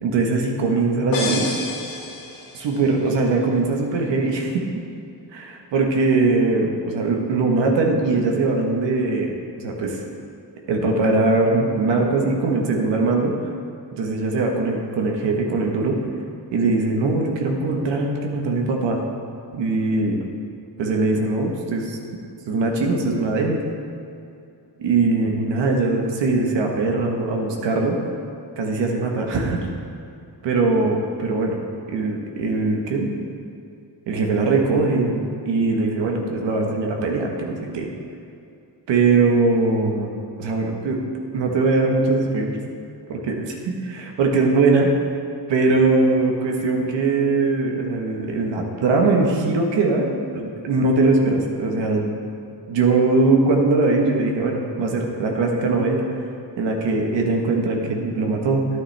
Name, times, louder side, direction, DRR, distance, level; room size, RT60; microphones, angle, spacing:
voice 1, 0.0-1.5 2.5-4.6 5.3-10.0 10.7-13.3 14.0-16.0 16.5-19.0 19.5-20.2 20.8-22.0 22.5-23.6 24.8-28.0 28.6-29.6 30.4-31.6 31.9-33.1 34.1-37.9 38.9-40.1 40.4-42.6 43.9-44.9 45.5-52.2 52.7-56.1 56.6-58.7, right 3 dB, 85° right, 1 dB, 1.2 m, -21 dB
sound 1, 1.1-2.9, left 3 dB, 85° left, 2.1 m, -29 dB
9.9 x 9.5 x 3.3 m, 2.5 s
cardioid pair, 85°, 43 cm